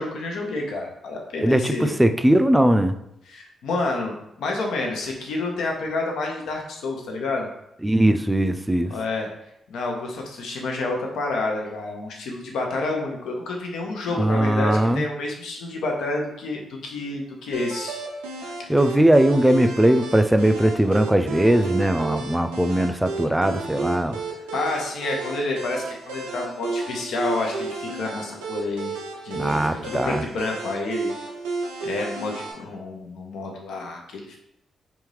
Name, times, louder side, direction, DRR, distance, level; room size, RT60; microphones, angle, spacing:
voice 1, 0.0-1.9 3.3-7.5 8.9-9.3 9.7-18.0 24.5-29.0 29.2-31.1 31.8-34.4, left 2 dB, 70° left, 1 dB, 0.7 m, -29 dB
voice 2, 1.4-2.9 7.8-8.9 14.2-15.0 18.7-24.2 29.3-30.2, right 1 dB, 10° right, 8 dB, 0.4 m, -19 dB
sound 1, 17.5-32.5, right 3 dB, 90° right, 0.5 m, -32 dB
3.5 x 2.7 x 3.1 m, 0.80 s
hypercardioid pair, 40°, 0 cm